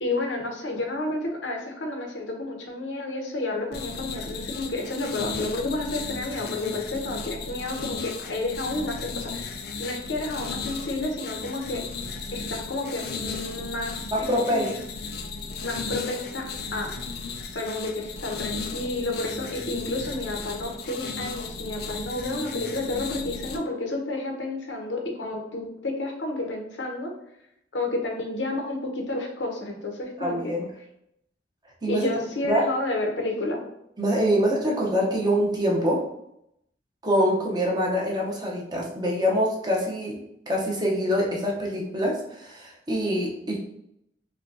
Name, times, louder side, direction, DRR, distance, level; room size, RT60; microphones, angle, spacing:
voice 1, 0.0-11.8 12.3-14.8 15.6-16.4 16.7-16.9 17.5-27.1 27.7-30.5 31.9-33.6, left 2 dB, 80° left, 1 dB, 0.9 m, -31 dB
sound 1, 3.7-23.6, left 4 dB, 60° left, 0.5 m, -35 dB
voice 2, 14.1-14.7 30.2-30.7 31.8-32.1 32.4-32.6 34.0-36.0 37.0-43.6, equal, 25° right, -2 dB, 0.7 m, -25 dB
5.4 x 2.3 x 2.6 m, 0.78 s
head